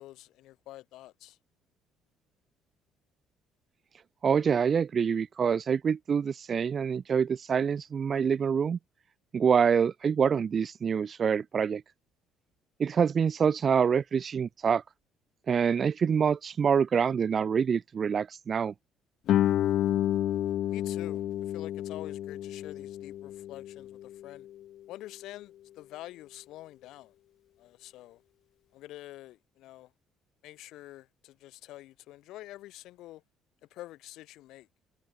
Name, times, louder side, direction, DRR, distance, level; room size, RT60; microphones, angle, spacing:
voice 1, 0.0-1.4 20.7-24.5 24.9-27.1 27.6-28.2 28.7-29.9 30.4-33.2 33.7-34.7, left 16 dB, 75° left, 5.9 m, -47 dB
voice 2, 4.2-8.8 9.3-11.8 12.8-14.8 15.5-18.7, right 7 dB, 35° right, 1.1 m, -26 dB
Guitar, 19.3-24.6, left 12 dB, 60° left, 0.8 m, -30 dB
cardioid pair, 140°, 0 cm